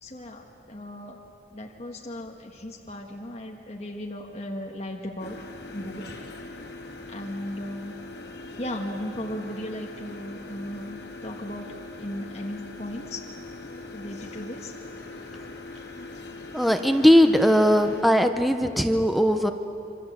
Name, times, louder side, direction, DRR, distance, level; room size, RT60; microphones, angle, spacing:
voice 1, 0.0-1.2 1.5-5.4 5.7-6.1 7.1-8.0 8.6-11.7 12.0-13.2 13.9-14.7, left 1 dB, 35° left, 0 dB, 1.7 m, -36 dB
sound 1, 5.2-18.0, left 2 dB, 70° left, 3.1 m, -41 dB
voice 2, 16.5-19.5, equal, ahead, 6 dB, 0.9 m, -19 dB
27.5 x 25.5 x 8.1 m, 2.8 s
head